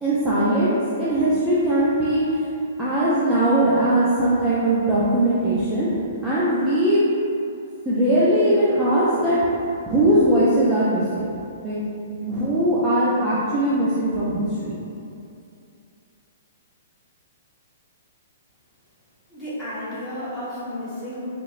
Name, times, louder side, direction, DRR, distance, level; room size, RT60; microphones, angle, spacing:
voice 1, 0.0-2.5 2.8-5.9 6.2-7.1 7.9-9.4 9.9-11.3 11.6-11.8 12.0-14.7, right 1 dB, 10° right, -10 dB, 0.4 m, -20 dB
voice 2, 19.3-21.3, left 1 dB, 10° left, -12 dB, 1.1 m, -32 dB
3.6 x 3.0 x 2.4 m, 2.6 s
hypercardioid pair, 160°, 0 cm